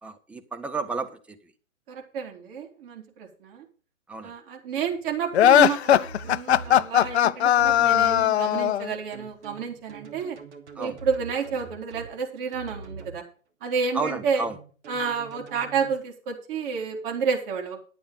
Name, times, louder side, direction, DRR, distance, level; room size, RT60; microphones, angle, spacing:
voice 1, 0.0-1.4 4.1-4.3 10.8-11.0 13.9-14.6, right 3 dB, 5° right, 7 dB, 0.6 m, -32 dB
voice 2, 1.9-3.7 4.2-10.4 10.8-13.2 13.6-14.5 14.9-17.8, right 6 dB, 40° right, 2 dB, 3.9 m, -30 dB
sound 1, 5.3-8.9, left 11 dB, 55° left, 0.6 m, -19 dB
sound 2, 6.0-7.2 7.6-8.2 9.1-12.1 12.5-13.2 14.1-15.9, right 4 dB, 60° right, 2.9 m, -43 dB
11.0 x 9.2 x 5.4 m, 0.39 s
figure-of-eight pair, 125°, 39 cm